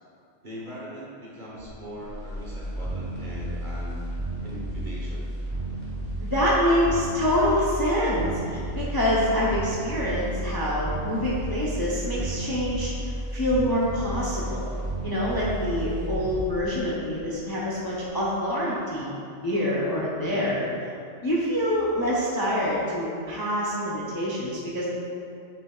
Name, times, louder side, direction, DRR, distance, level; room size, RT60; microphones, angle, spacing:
voice 1, 0.4-4.0 4.4-5.3 20.3-20.6, equal, 40° right, -6 dB, 1.2 m, -40 dB
sound 1, 1.6-17.7 18.0-18.1, right 1 dB, 10° right, 1.2 m, -32 dB
voice 2, 6.2-14.6 15.0-19.1 19.4-20.6 21.2-24.9, equal, 25° left, -6 dB, 0.6 m, -26 dB
6.7 x 6.1 x 2.3 m, 2.5 s
omnidirectional pair, 1.3 m